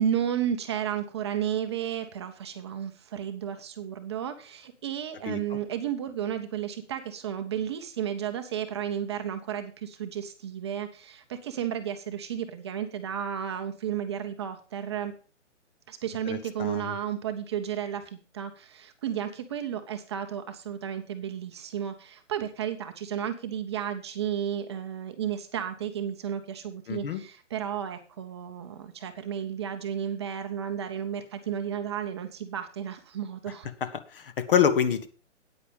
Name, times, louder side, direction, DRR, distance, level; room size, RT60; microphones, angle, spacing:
voice 1, 0.0-15.1 15.9-33.7, right 9 dB, 20° right, 6 dB, 0.7 m, -33 dB
voice 2, 16.3-16.9 26.9-27.2 33.8-35.1, left 8 dB, 45° left, 12 dB, 1.2 m, -26 dB
9.1 x 8.5 x 5.2 m, 0.37 s
hypercardioid pair, 145°, 37 cm